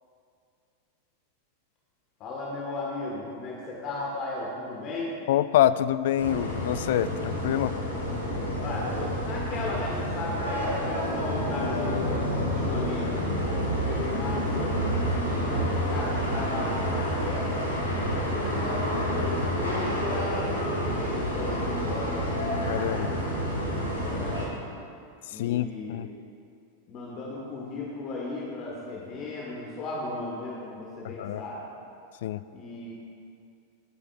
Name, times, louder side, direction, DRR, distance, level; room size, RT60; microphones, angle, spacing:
voice 1, 2.2-5.1 8.6-12.0 12.5-14.9 15.4-17.5 18.1-21.7 22.1-22.4 24.0-24.5 25.3-26.0 26.9-31.7 32.5-32.9, left 2 dB, 35° left, -4 dB, 1.8 m, -36 dB
voice 2, 5.3-7.8 22.7-23.1 25.3-26.1 31.0-31.4 32.2-32.4, left 12 dB, 55° left, 16 dB, 0.3 m, -26 dB
sound 1, 6.2-24.5, equal, 80° left, 2.3 m, -29 dB
19.5 x 9.6 x 2.7 m, 2.4 s
figure-of-eight pair, 90°, 0 cm